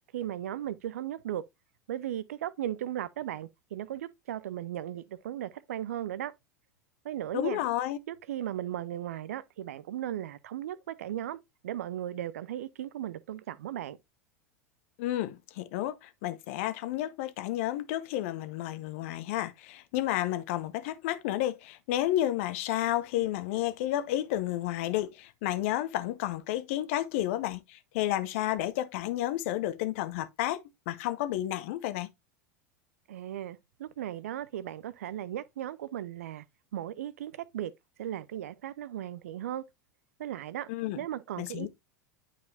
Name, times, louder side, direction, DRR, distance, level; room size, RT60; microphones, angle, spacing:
voice 1, 0.1-1.4 1.9-6.3 7.0-7.6 8.1-11.4 11.6-14.0 33.1-36.4 36.7-37.7 38.0-39.6 40.2-40.7 41.0-41.7, right 11 dB, 65° right, 0.5 m, -36 dB
voice 2, 7.3-8.0 15.0-32.1 40.7-41.0 41.4-41.7, left 13 dB, 55° left, 0.7 m, -31 dB
8.9 x 4.9 x 2.7 m
figure-of-eight pair, 85°, 8 cm